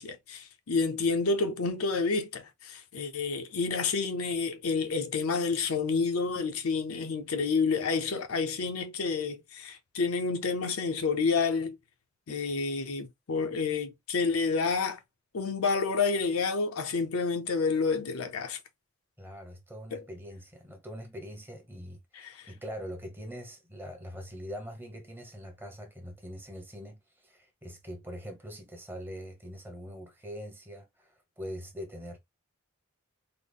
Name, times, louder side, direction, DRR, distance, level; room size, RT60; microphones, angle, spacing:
voice 1, 0.0-11.8 12.3-15.0 15.3-18.6 19.9-20.0 22.1-22.5, left 4 dB, 80° left, 0.6 m, -29 dB
voice 2, 19.2-32.2, equal, 10° right, 0.8 m, -43 dB
3.9 x 2.0 x 3.4 m
head